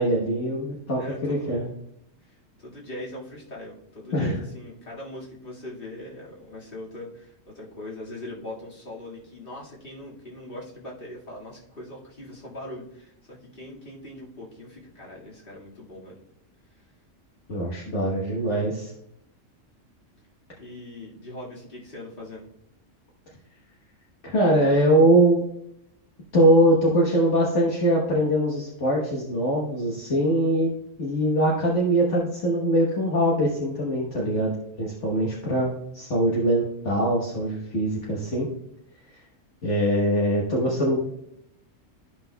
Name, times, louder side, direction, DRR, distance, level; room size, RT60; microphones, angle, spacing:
voice 1, 0.0-1.7 4.1-4.4 17.5-18.9 24.2-25.4 26.3-30.7 31.0-34.5 34.8-38.5 39.6-41.0, right 1 dB, 65° left, -3 dB, 1.5 m, -22 dB
voice 2, 1.0-1.6 2.2-16.2 16.7-16.8 20.6-22.5, left 1 dB, 45° left, -4 dB, 2.1 m, -41 dB
13.5 x 5.7 x 2.2 m, 0.78 s
omnidirectional pair, 1.3 m